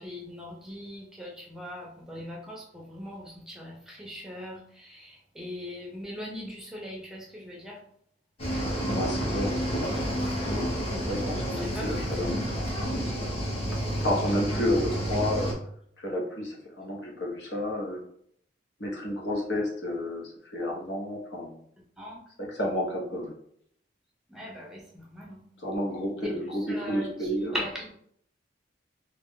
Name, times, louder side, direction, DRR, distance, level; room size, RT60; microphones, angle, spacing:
voice 1, 0.0-7.8 11.6-12.0 22.0-22.2 24.3-25.4 26.2-26.4 26.7-27.9, equal, 5° right, -2 dB, 0.6 m, -40 dB
Cricket / Waves surf, 8.4-15.5, equal, 35° left, 1.0 m, -30 dB
voice 2, 8.9-9.6 11.1-12.6 14.0-15.5 16.0-18.0 18.8-21.6 22.4-23.3 25.6-27.6, left 1 dB, 65° left, -2 dB, 1.0 m, -31 dB
3.0 x 2.4 x 3.7 m, 0.66 s
head